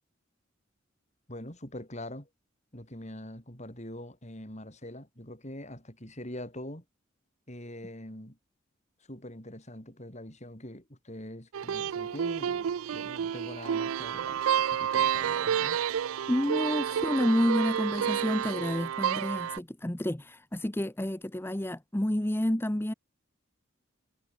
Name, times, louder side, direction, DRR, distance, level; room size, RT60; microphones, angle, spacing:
voice 1, 1.3-2.3 2.7-6.8 7.5-8.4 9.1-15.8, left 1 dB, 35° left, 7.7 m, -43 dB
sound 1, 11.5-19.6, right 8 dB, 90° right, 0.4 m, -30 dB
voice 2, 16.3-22.9, left 1 dB, 10° left, 0.8 m, -29 dB
head